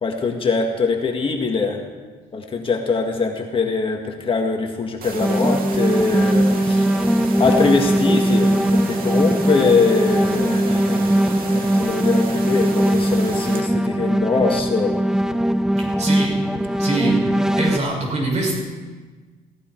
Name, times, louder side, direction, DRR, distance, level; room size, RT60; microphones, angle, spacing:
voice 1, 0.0-1.8 2.3-6.9 7.4-15.0, left 4 dB, 30° left, 2 dB, 1.8 m, -22 dB
sound 1, 5.0-13.6, right 4 dB, 60° right, 2.2 m, -33 dB
sound 2, 5.1-17.8, right 1 dB, 5° right, 0.5 m, -20 dB
voice 2, 15.8-16.4 16.8-17.3 17.6-18.6, right 2 dB, 45° right, -1 dB, 6.7 m, -24 dB
17.0 x 16.5 x 4.7 m, 1.4 s
cardioid pair, 110°, 17 cm